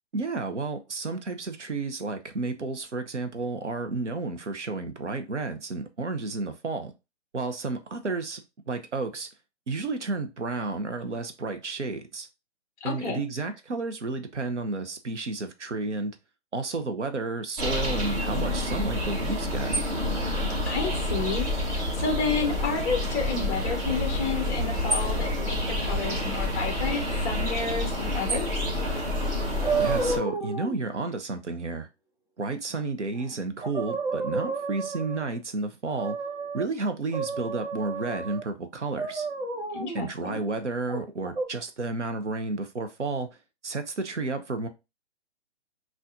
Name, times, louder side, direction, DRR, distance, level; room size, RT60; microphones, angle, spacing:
voice 1, 0.1-6.9 7.3-9.3 9.7-12.3 12.8-16.1 16.5-19.7 29.8-31.9 32.4-36.2 36.5-39.3 39.9-43.3 43.6-44.7, right 3 dB, 85° right, 0.8 m, -31 dB
voice 2, 12.8-13.2 20.6-28.5 39.7-40.4, left 4 dB, 10° left, 0.6 m, -31 dB
sound 1, 17.6-30.2, left 1 dB, 30° right, 1.6 m, -28 dB
sound 2, 29.6-30.7 33.2-33.3 33.6-35.3 35.9-36.7 37.1-38.4 38.9-40.0 40.9-41.5, right 4 dB, 45° right, 1.3 m, -31 dB
5.7 x 2.5 x 2.6 m
figure-of-eight pair, 135°, 35 cm